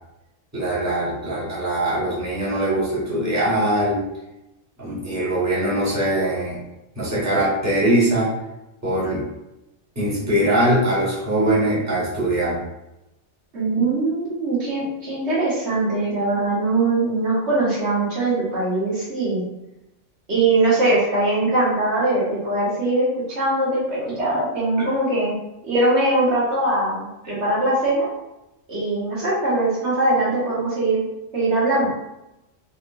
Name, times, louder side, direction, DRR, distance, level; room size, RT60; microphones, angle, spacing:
voice 1, 0.5-4.0 4.8-6.6 6.9-8.3 8.8-9.3 9.9-12.6, right 1 dB, 15° right, -8 dB, 1.2 m, -22 dB
voice 2, 13.5-19.4 20.3-25.4 25.6-28.1 28.7-31.0 31.3-31.9, right 2 dB, 65° right, -7 dB, 1.6 m, -21 dB
4.0 x 3.1 x 2.5 m, 0.92 s
omnidirectional pair, 1.2 m